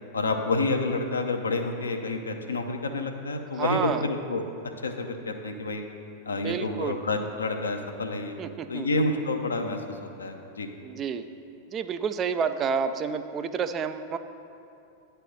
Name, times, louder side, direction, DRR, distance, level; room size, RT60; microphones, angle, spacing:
voice 1, 0.1-4.4 4.8-5.8 6.3-8.4 8.7-10.7, left 3 dB, 75° left, 5 dB, 0.6 m, -29 dB
voice 2, 3.5-4.1 6.3-7.0 8.4-8.9 10.8-11.3 11.7-14.2, right 6 dB, 30° right, 9 dB, 0.3 m, -29 dB
9.7 x 3.4 x 6.1 m, 2.7 s
figure-of-eight pair, 90°, 0 cm